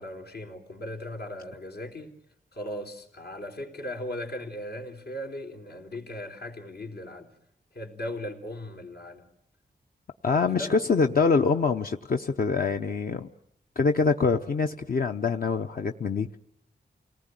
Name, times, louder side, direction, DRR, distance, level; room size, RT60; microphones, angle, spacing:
voice 1, 0.0-2.1 2.5-7.3 7.7-9.2 10.6-10.7, left 1 dB, 75° left, 3.8 m, -38 dB
voice 2, 10.2-13.3 13.8-16.4, left 4 dB, 60° left, 0.9 m, -25 dB
29.0 x 19.0 x 9.2 m
wide cardioid pair, 145°, 17 cm